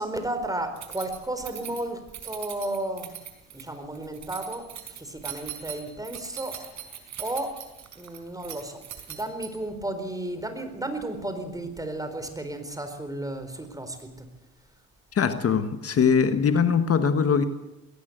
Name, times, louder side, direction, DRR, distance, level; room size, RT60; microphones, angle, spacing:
voice 1, 0.0-3.1 3.5-6.9 7.2-7.6 8.0-8.8 9.1-14.3, right 1 dB, 10° right, 4.4 m, -33 dB
Keys jangling, 0.8-9.8, right 10 dB, 65° right, 4.6 m, -40 dB
voice 2, 15.1-17.4, left 6 dB, 50° left, 1.5 m, -22 dB
21.0 x 18.0 x 8.1 m
cardioid pair, 90°, 30 cm